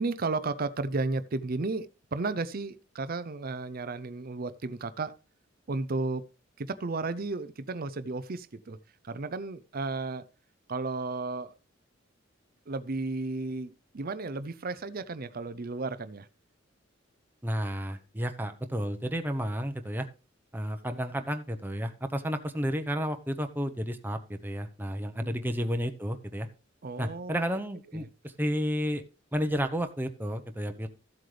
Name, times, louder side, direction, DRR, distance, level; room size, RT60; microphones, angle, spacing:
voice 1, 0.0-5.1 5.7-6.2 6.6-8.8 9.0-10.3 10.7-11.5 12.7-16.3 20.8-21.0 25.2-25.4 26.8-27.6 27.9-28.1, right 3 dB, 50° right, 0.6 m, -33 dB
voice 2, 17.4-20.1 20.5-26.5 27.0-29.0 29.3-30.9, equal, 10° right, 0.9 m, -32 dB
14.0 x 7.7 x 3.3 m
head